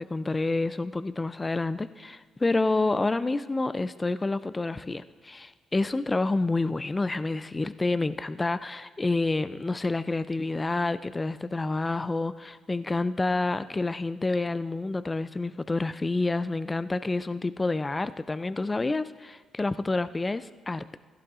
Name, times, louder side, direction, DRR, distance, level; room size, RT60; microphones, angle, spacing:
voice 1, 0.0-21.0, left 2 dB, 20° left, 14 dB, 0.3 m, -28 dB
16.0 x 15.0 x 2.5 m, 1.5 s
cardioid pair, 90°, 0 cm